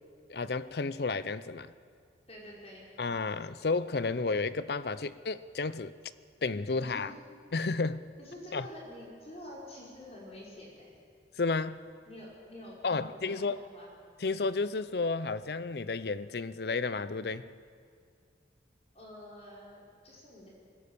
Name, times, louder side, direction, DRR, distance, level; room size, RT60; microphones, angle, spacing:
voice 1, 0.3-1.7 3.0-5.9 6.4-7.1 7.5-8.1 8.5-8.6 11.4-11.9 12.8-13.6 14.2-17.5, left 3 dB, 60° left, 0.6 m, -32 dB
voice 2, 2.3-2.8 6.8-7.1 8.2-10.9 12.1-13.9 18.9-20.5, left 1 dB, 35° left, 5.9 m, -48 dB
21.0 x 16.5 x 8.6 m
head